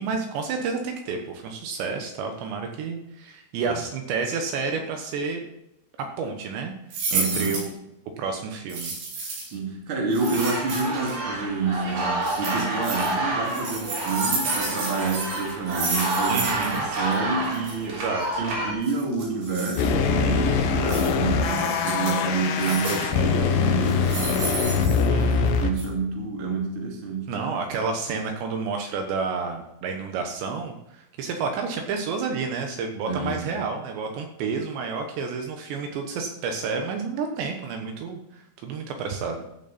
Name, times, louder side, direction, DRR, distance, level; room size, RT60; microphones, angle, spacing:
voice 1, 0.0-5.4 6.0-6.7 7.1-7.7 8.2-9.3 16.3-16.9 17.8-18.4 21.4-21.9 22.8-23.5 25.1-25.6 27.3-39.5, right 5 dB, 75° right, 4 dB, 3.2 m, -30 dB
sound 1, 6.9-7.7 8.7-9.5 10.1-11.1 12.2-13.1 13.5-16.8 17.0-17.1 17.4-17.7 18.8-19.9 20.9-21.1 21.4-22.2 22.6-23.1 23.8-25.5 25.8-25.9, right 3 dB, 90° right, 6.9 m, -31 dB
voice 2, 7.1-7.7 9.3-18.0 18.4-24.4 25.5-27.3 33.1-33.5, right 3 dB, 35° right, 0 dB, 2.6 m, -28 dB
sound 2, 10.2-18.7, right 2 dB, 55° right, 5.0 m, -29 dB
sound 3, 19.8-25.7, left 5 dB, 75° left, 2.0 m, -23 dB
15.5 x 7.5 x 4.2 m, 0.87 s
omnidirectional pair, 5.5 m